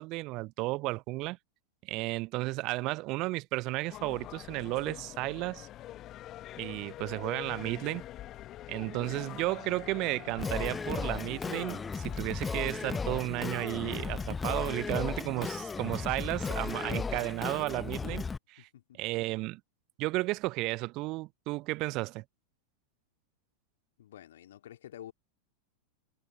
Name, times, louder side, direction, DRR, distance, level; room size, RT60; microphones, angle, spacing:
voice 1, 0.0-1.4 1.8-5.7 6.6-8.0 8.7-18.7 19.0-19.6 20.0-22.2, right 21 dB, 40° right, 0.5 m, -33 dB
sound 1, 3.9-12.2, left 14 dB, 35° left, 1.8 m, -45 dB
Singing, 10.4-18.4, left 5 dB, 15° left, 1.0 m, -35 dB
voice 2, 18.6-19.0 24.0-25.1, left 12 dB, 60° left, 2.7 m, -49 dB
figure-of-eight pair, 90°, 0 cm